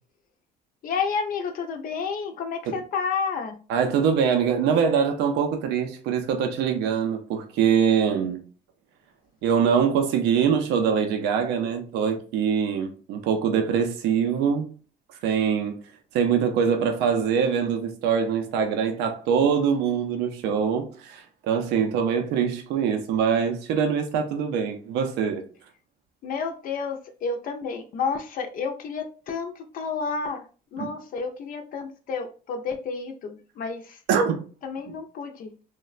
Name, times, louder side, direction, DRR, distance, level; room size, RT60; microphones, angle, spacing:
voice 1, 0.8-3.6 26.2-30.4 30.7-34.0 34.6-35.5, left 5 dB, 55° left, 0.4 m, -30 dB
voice 2, 3.7-8.4 9.4-14.7 15.2-15.8 16.1-25.4 30.8-30.9 34.1-34.4, right 7 dB, 90° right, 0.5 m, -23 dB
3.1 x 2.1 x 2.3 m
cardioid pair, 110°, 17 cm